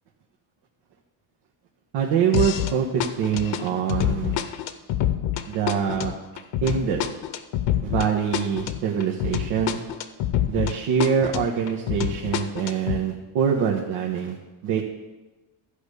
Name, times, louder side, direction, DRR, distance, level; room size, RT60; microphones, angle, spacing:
voice 1, 1.9-4.4 5.5-6.1 6.6-7.0 7.8-9.8 10.5-14.4 14.6-14.8, right 7 dB, 75° right, -2 dB, 1.4 m, -24 dB
sound 1, 2.3-2.7 3.0-10.7 11.0-13.0, left 12 dB, 75° left, 0.9 m, -26 dB
13.0 x 5.1 x 6.9 m, 1.1 s
cardioid pair, 135°, 45 cm